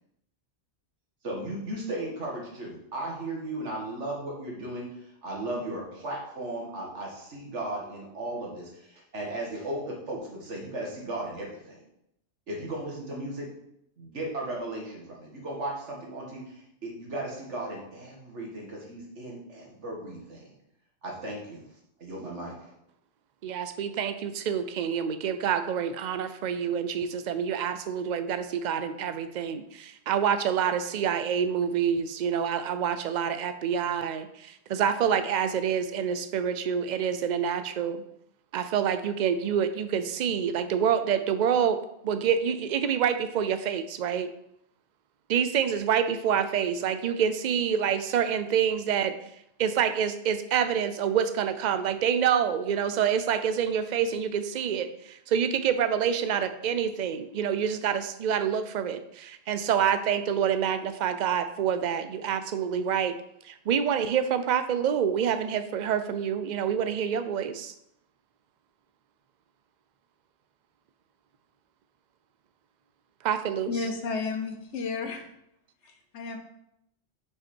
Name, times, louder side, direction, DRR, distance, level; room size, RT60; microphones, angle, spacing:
voice 1, 1.2-11.8 12.5-13.5 14.0-20.6 21.0-21.6 22.0-22.7, right 1 dB, 90° right, -2 dB, 2.1 m, -36 dB
voice 2, 23.4-38.0 38.5-41.8 42.0-44.3 45.3-49.1 49.6-63.1 63.4-67.7 73.2-73.7, right 8 dB, 55° right, 10 dB, 0.5 m, -27 dB
voice 3, 73.7-75.3 75.8-76.4, left 4 dB, 85° left, 6 dB, 1.2 m, -32 dB
5.8 x 5.5 x 4.4 m, 0.79 s
omnidirectional pair, 1.2 m